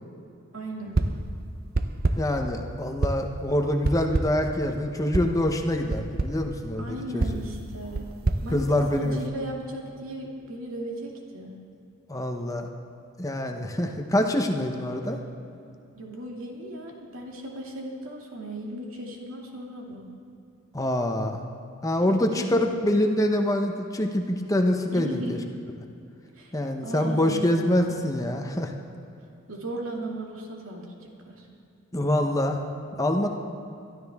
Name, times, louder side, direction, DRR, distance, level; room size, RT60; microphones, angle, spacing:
voice 1, 0.5-0.9 6.8-8.1 8.4-8.7 8.9-11.6 15.9-20.0 22.1-22.8 24.9-25.4 26.3-26.5 26.8-27.5 29.5-31.5, right 1 dB, 80° right, -1 dB, 2.4 m, -36 dB
sound 1, 0.9-1.3 1.7-2.4 3.0-3.4 3.8-4.5 5.1-5.4 5.9-6.4 7.2-9.3, right 2 dB, 45° right, 0.6 m, -28 dB
voice 2, 2.2-7.2 8.5-9.2 12.1-12.7 13.2-15.2 20.7-21.4 21.8-25.4 26.5-28.7 31.9-32.6 33.0-33.3, left 1 dB, 15° left, 3 dB, 0.8 m, -25 dB
22.5 x 12.5 x 3.6 m, 2.6 s
head